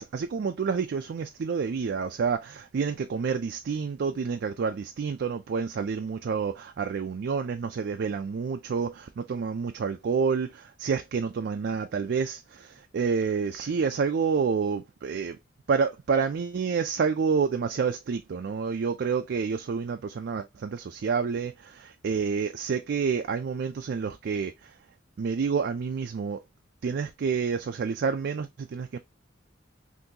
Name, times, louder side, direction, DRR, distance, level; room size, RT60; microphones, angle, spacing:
voice 1, 0.0-15.4 15.7-24.7 25.2-26.4 26.8-29.0, right 5 dB, 60° right, 0.4 m, -29 dB
3.8 x 2.6 x 2.7 m
head